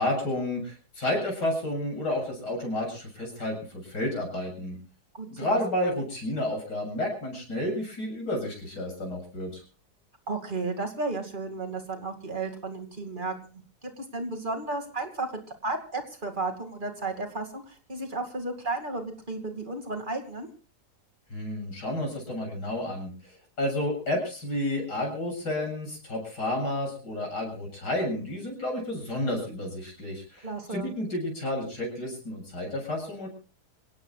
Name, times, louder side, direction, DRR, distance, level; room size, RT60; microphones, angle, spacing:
voice 1, 0.0-4.8 5.3-9.6 21.3-23.1 23.6-33.3, left 1 dB, 75° left, 1 dB, 8.4 m, -31 dB
voice 2, 5.1-5.6 10.3-20.5 30.4-31.0, right 3 dB, 30° right, 5 dB, 2.6 m, -33 dB
27.0 x 17.5 x 2.4 m, 0.37 s
omnidirectional pair, 1.8 m